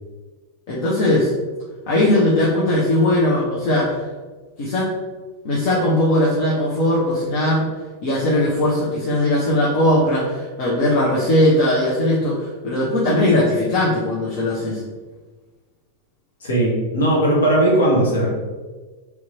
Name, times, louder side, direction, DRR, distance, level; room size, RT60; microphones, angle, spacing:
voice 1, 0.7-1.3 1.9-4.0 4.6-4.9 5.4-7.7 8.0-14.8, left 1 dB, 50° left, -6 dB, 0.8 m, -19 dB
voice 2, 16.4-18.3, right 1 dB, 65° left, -3 dB, 1.2 m, -18 dB
3.4 x 3.0 x 4.0 m, 1.3 s
figure-of-eight pair, 90°, 0 cm